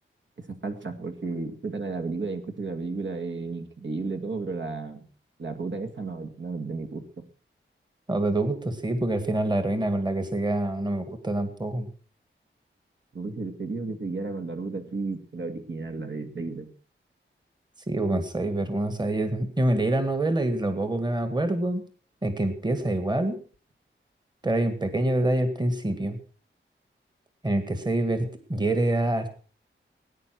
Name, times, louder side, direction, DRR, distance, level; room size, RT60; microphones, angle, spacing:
voice 1, 0.4-5.0 5.4-7.2 13.1-16.7, right 3 dB, 65° right, 5 dB, 2.3 m, -33 dB
voice 2, 8.1-11.9 17.9-21.8 22.2-23.4 24.4-26.2 27.4-29.3, right 1 dB, 20° right, 9 dB, 1.9 m, -26 dB
19.5 x 10.0 x 6.1 m, 0.42 s
wide cardioid pair, 130°, 21 cm